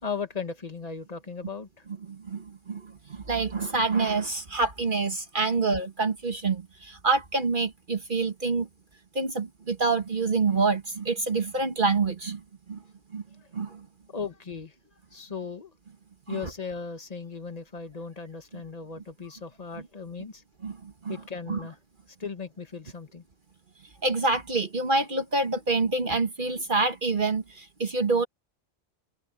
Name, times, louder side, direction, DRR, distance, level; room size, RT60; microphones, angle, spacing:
voice 1, 0.0-1.8 14.1-14.7 15.1-15.7 16.3-20.4 21.1-21.8 22.2-23.2, left 5 dB, 40° left, 1.5 m, -37 dB
voice 2, 2.1-8.7 9.1-12.4 12.7-12.8 13.1-13.2 13.5-13.8 16.3-16.4 20.6-21.2 21.5-21.6 24.0-28.3, right 3 dB, 55° right, 1.6 m, -27 dB
omnidirectional pair, 1.1 m